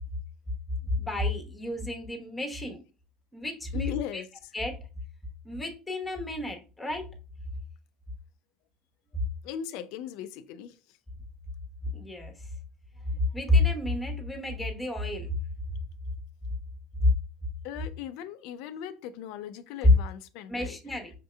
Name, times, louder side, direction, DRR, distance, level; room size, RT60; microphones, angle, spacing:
voice 1, 0.9-2.8 3.3-4.2 4.5-4.7 5.4-7.1 11.9-12.3 13.3-15.3 17.0-17.1 20.5-21.1, left 2 dB, 5° left, 1.0 m, -30 dB
voice 2, 3.7-4.3 9.4-10.8 17.6-20.8, left 9 dB, 75° left, 0.4 m, -38 dB
5.7 x 2.7 x 2.2 m
cardioid pair, 125°, 0 cm